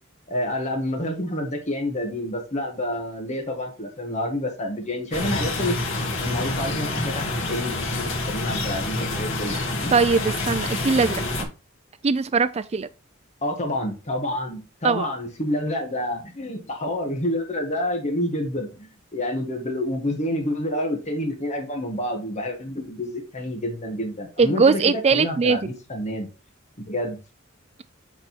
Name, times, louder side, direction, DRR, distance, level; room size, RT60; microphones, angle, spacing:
voice 1, 0.3-5.8 6.2-9.9 13.4-26.3 26.8-27.2, left 1 dB, 35° left, 1.8 m, -28 dB
sound 1, 5.1-11.4, left 2 dB, 65° left, 2.4 m, -27 dB
voice 2, 9.9-11.5 12.0-12.9 14.8-15.1 24.4-25.7, right 4 dB, 30° right, 0.4 m, -21 dB
8.5 x 4.1 x 4.4 m
head